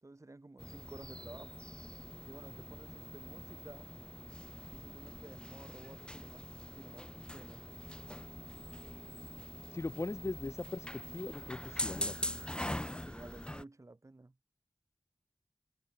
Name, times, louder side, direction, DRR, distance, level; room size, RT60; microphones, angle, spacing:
voice 1, 0.0-1.7 2.2-3.9 4.7-6.4 6.7-7.6 13.0-14.4, right 2 dB, 40° right, 6.0 m, -53 dB
sound 1, 0.6-13.6, left 1 dB, 10° left, 2.0 m, -43 dB
voice 2, 9.7-12.4 12.7-13.0, left 2 dB, 40° left, 0.9 m, -40 dB
wide cardioid pair, 70°, 8 cm